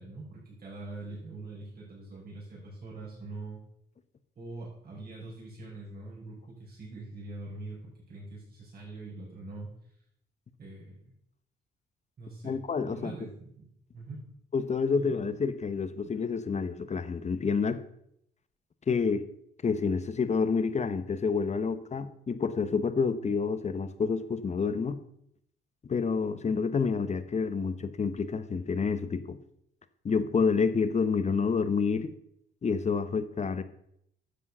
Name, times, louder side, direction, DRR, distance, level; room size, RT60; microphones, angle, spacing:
voice 1, 0.0-3.6 4.3-9.7 10.6-11.1 12.2-12.6 12.8-13.7 13.9-14.2 14.9-15.1, right 2 dB, 50° right, -6 dB, 5.1 m, -43 dB
voice 2, 12.4-13.1 14.5-17.8 18.9-19.2 19.6-25.0 25.9-29.4 30.0-32.1 32.6-33.6, left 5 dB, 35° left, 11 dB, 1.0 m, -28 dB
10.0 x 7.3 x 5.5 m, 0.72 s
cardioid pair, 90°, 20 cm